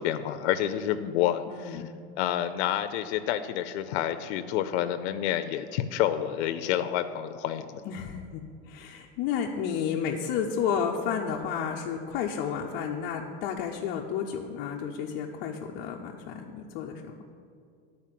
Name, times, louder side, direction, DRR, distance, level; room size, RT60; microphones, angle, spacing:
voice 1, 0.0-1.8 2.2-7.8, left 11 dB, 85° left, 10 dB, 0.5 m, -29 dB
voice 2, 1.5-1.9 7.9-17.1, left 7 dB, 30° left, -1 dB, 0.4 m, -32 dB
11.0 x 4.3 x 7.4 m, 2.3 s
supercardioid pair, 170°, 33 cm